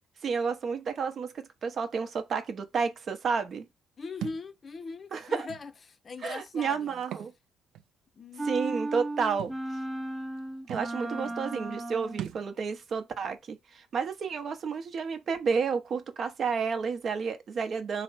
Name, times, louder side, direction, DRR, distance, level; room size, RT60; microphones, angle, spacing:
voice 1, 0.2-3.7 5.1-5.5 6.2-7.3 8.4-9.5 10.7-18.0, right 5 dB, 60° right, 0.7 m, -31 dB
voice 2, 4.0-7.0 8.1-8.5 11.1-11.4, left 4 dB, 45° left, 0.5 m, -41 dB
Thump thud, 4.2-4.5 5.5-5.6 7.0-7.3 7.7-7.8 9.4-9.6 10.4-10.5 10.7-10.9 12.2-12.5, right 11 dB, 90° right, 0.3 m, -38 dB
sound 1, 8.4-12.3, right 2 dB, 20° right, 0.7 m, -35 dB
3.3 x 2.1 x 3.9 m
cardioid pair, 70°, 0 cm